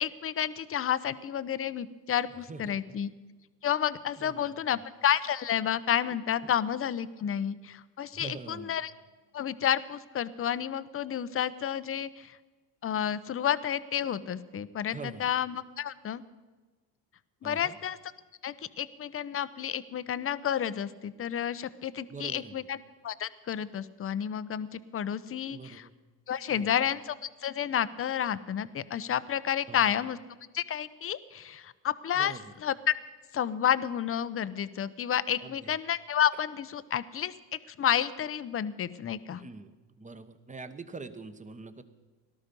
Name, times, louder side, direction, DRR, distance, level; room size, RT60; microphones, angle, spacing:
voice 1, 0.0-3.1 3.6-8.9 9.3-12.4 12.8-16.2 17.4-18.0 18.4-22.8 23.0-25.8 26.3-30.2 30.5-32.9 33.3-39.4, left 9 dB, 30° left, 16 dB, 0.7 m, -30 dB
voice 2, 2.5-2.8 4.2-4.6 6.4-6.5 8.1-8.7 14.9-15.3 17.4-17.8 22.1-22.7 25.5-25.9 26.5-26.7 29.7-29.9 32.1-32.5 35.4-35.8 39.4-41.8, right 4 dB, 15° right, 11 dB, 1.1 m, -44 dB
18.5 x 12.5 x 5.4 m, 1.3 s
supercardioid pair, 90°, 45 cm